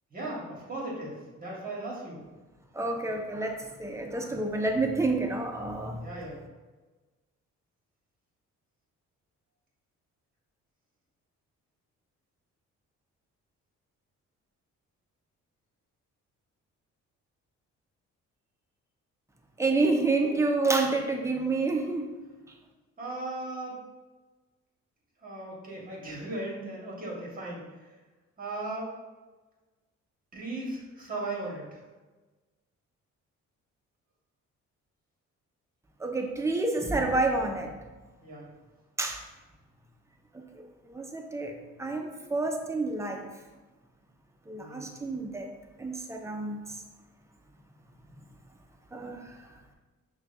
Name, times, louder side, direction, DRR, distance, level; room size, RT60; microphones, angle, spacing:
voice 1, 0.1-2.2 6.0-6.4 23.0-23.8 25.2-27.6 28.4-28.9 30.3-31.8 38.2-38.5 44.6-44.9, right 2 dB, 30° right, -4 dB, 1.4 m, -37 dB
voice 2, 2.7-6.0 19.6-22.1 36.0-37.7 39.0-39.2 40.3-40.4 40.9-41.5 41.8-43.3 44.5-45.5 45.8-46.6 48.9-49.3, right 3 dB, 10° right, 2 dB, 0.5 m, -28 dB
5.7 x 2.3 x 2.6 m, 1.2 s
cardioid pair, 90°, 30 cm